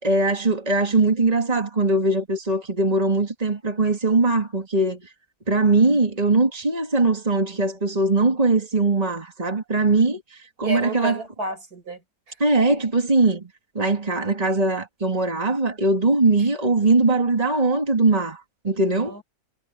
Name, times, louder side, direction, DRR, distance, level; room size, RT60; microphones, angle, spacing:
voice 1, 0.0-5.0 5.5-10.2 10.6-11.2 12.4-13.5 13.7-19.2, right 2 dB, 25° right, 2.8 m, -21 dB
voice 2, 10.6-12.0 12.3-12.4 18.9-19.2, right 2 dB, 90° right, 6.4 m, -32 dB
omnidirectional pair, 1.6 m